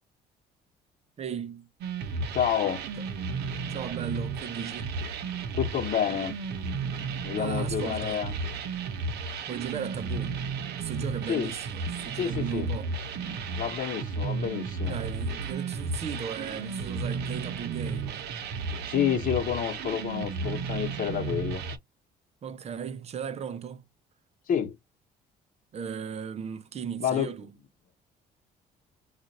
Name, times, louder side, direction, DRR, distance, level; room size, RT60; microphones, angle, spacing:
voice 1, 1.2-1.7 3.0-3.1 3.7-5.0 7.4-8.3 9.5-10.4 10.8-12.9 14.9-18.2 22.4-23.8 25.7-27.5, right 7 dB, 40° right, 0.6 m, -36 dB
sound 1, 1.8-21.8, right 4 dB, 75° right, 0.8 m, -33 dB
voice 2, 2.3-2.8 5.5-6.3 7.2-8.3 11.3-11.5 12.1-12.7 13.6-15.0 18.8-21.6 24.5-24.8 27.0-27.3, left 9 dB, 55° left, 1.1 m, -29 dB
2.5 x 2.4 x 4.1 m
cardioid pair, 110°, 17 cm